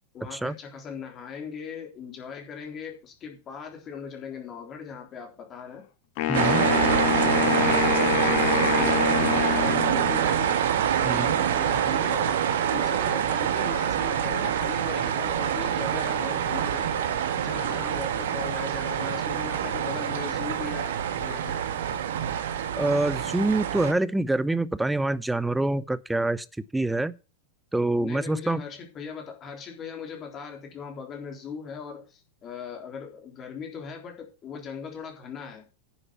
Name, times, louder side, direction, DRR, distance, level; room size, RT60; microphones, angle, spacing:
voice 1, 0.1-5.9 6.3-10.6 11.0-12.4 12.7-16.9 17.4-20.9 21.2-21.6 28.0-35.7, left 6 dB, 30° left, 3.6 m, -39 dB
Wind instrument woodwind instrument, 6.2-10.4, left 12 dB, 45° left, 1.5 m, -26 dB
voice 2, 6.3-6.6 11.0-11.4 22.8-26.5 26.7-27.1 27.7-28.6, right 2 dB, 5° right, 0.7 m, -26 dB
sound 1, 6.3-23.9, right 9 dB, 60° right, 1.4 m, -26 dB
10.0 x 7.9 x 5.8 m
figure-of-eight pair, 90°, 0 cm